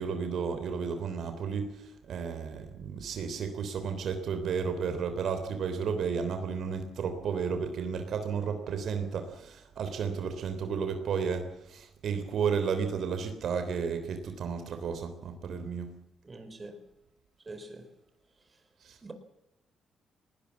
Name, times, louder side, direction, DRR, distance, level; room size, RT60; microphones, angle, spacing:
voice 1, 0.0-15.9 18.8-19.0, right 6 dB, 65° right, 3.4 m, -33 dB
voice 2, 16.2-16.8 17.5-17.8 19.0-19.1, right 2 dB, 25° right, 4.5 m, -44 dB
20.0 x 19.5 x 7.3 m
cardioid pair, 90°, 0 cm